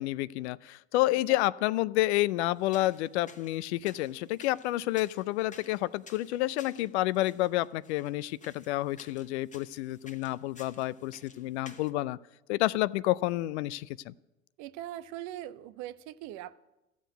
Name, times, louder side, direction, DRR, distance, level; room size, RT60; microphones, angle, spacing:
voice 1, 0.0-12.2 12.5-14.1, left 17 dB, 65° left, 20 dB, 0.5 m, -29 dB
sound 1, 2.5-11.9, left 4 dB, 20° left, 1.4 m, -55 dB
voice 2, 14.6-16.6, right 13 dB, 50° right, 16 dB, 0.7 m, -41 dB
14.0 x 7.3 x 9.1 m, 0.99 s
hypercardioid pair, 75°, 37 cm